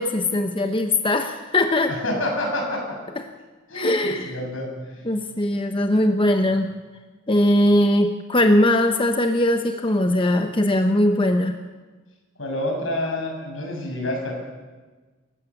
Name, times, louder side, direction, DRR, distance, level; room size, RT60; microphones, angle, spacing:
voice 1, 0.0-1.9 3.7-4.3 5.0-6.7 7.3-11.6, left 1 dB, 25° left, 6 dB, 0.9 m, -20 dB
voice 2, 1.9-2.9 3.7-4.7 12.4-14.3, left 1 dB, 75° left, 1 dB, 6.8 m, -27 dB
29.0 x 15.5 x 7.1 m, 1.3 s
head